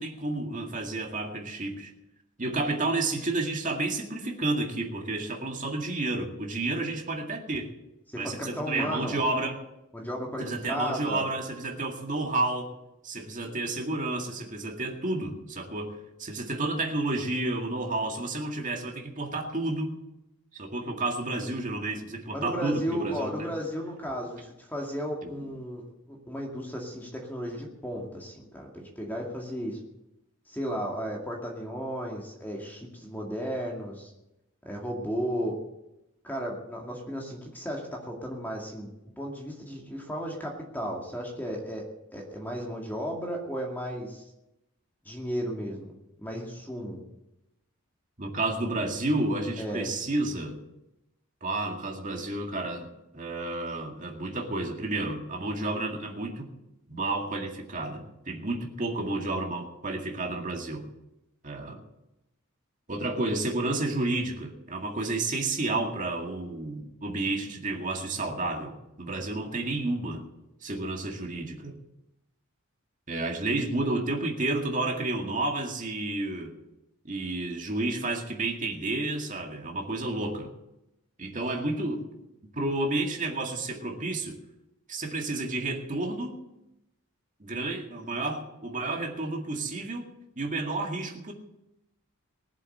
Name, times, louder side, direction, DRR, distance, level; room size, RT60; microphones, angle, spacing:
voice 1, 0.0-1.9 2.4-7.7 8.2-9.6 10.4-12.7 13.0-19.9 20.5-23.5 25.2-25.5 48.2-50.6 51.4-52.9 53.1-56.5 56.9-60.8 61.4-61.8 62.9-70.2 70.6-71.7 73.1-76.5 77.0-80.5 81.2-82.1 82.5-84.4 84.9-86.4 87.4-90.1 90.4-91.3, right 2 dB, 35° right, 2 dB, 2.1 m, -31 dB
voice 2, 8.1-9.2 9.9-11.3 22.3-29.8 30.5-34.1 34.7-35.6 36.2-38.9 39.2-44.2 45.1-45.9 46.2-47.0 49.6-49.9, equal, 10° left, -1 dB, 2.2 m, -34 dB
19.5 x 7.6 x 7.9 m, 0.91 s
head